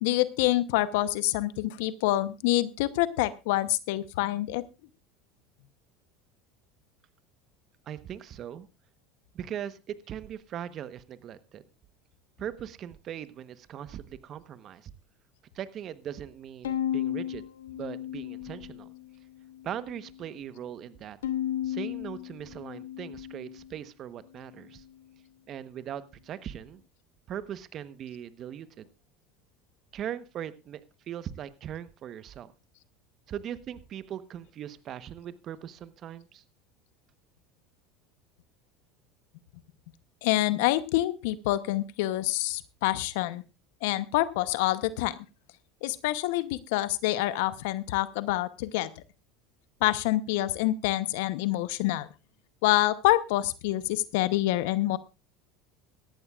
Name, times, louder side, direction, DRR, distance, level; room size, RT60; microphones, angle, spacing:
voice 1, 0.0-4.6 40.2-43.4 43.8-45.1 45.8-48.9 49.8-52.1 52.6-55.0, left 16 dB, 70° left, 15 dB, 0.8 m, -26 dB
voice 2, 7.9-8.7 9.3-11.6 12.4-14.9 15.5-18.9 19.6-21.2 21.6-24.8 25.5-26.8 27.3-28.9 29.9-30.8 31.1-32.5 33.3-36.4, right 10 dB, 45° right, 14 dB, 1.0 m, -40 dB
Bowed string instrument, 16.6-19.0 19.5-20.2 21.2-23.7, left 11 dB, 90° left, 1.4 m, -34 dB
18.0 x 13.5 x 2.4 m, 0.28 s
hypercardioid pair, 90°, 0 cm